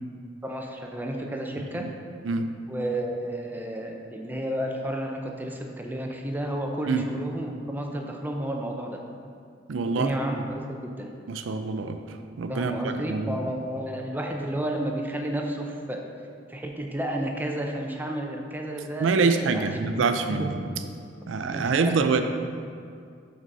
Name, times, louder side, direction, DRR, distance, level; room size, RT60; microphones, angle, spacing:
voice 1, 0.4-1.9 2.7-9.0 9.8-11.1 12.5-16.0 16.5-19.9 20.4-20.5 20.8-20.9 21.5-22.2, right 1 dB, 10° right, 2 dB, 0.5 m, -32 dB
voice 2, 9.7-10.1 11.3-12.0 12.4-13.4 19.0-20.6 21.3-22.2, right 4 dB, 80° right, 8 dB, 0.4 m, -25 dB
6.1 x 4.1 x 5.3 m, 2.3 s
head